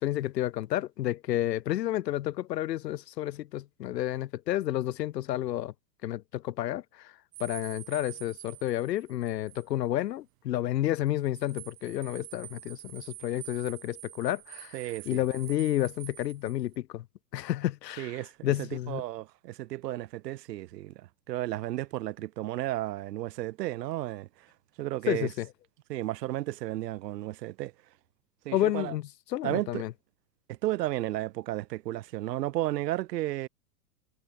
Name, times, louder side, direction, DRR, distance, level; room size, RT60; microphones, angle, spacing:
voice 1, 0.0-5.7 6.0-6.8 7.4-17.0 17.3-19.0 25.1-25.5 28.5-29.0 29.3-29.9, left 13 dB, 90° left, 0.8 m, -30 dB
sound 1, 7.3-9.7 10.0-10.1 11.1-16.8, right 20 dB, 55° right, 3.1 m, -47 dB
voice 2, 14.7-15.2 18.0-20.9 21.3-24.3 24.8-25.3 25.9-27.7 28.4-28.9 29.4-29.8 30.5-33.5, right 15 dB, 80° right, 0.8 m, -33 dB
hypercardioid pair, 125°, 48 cm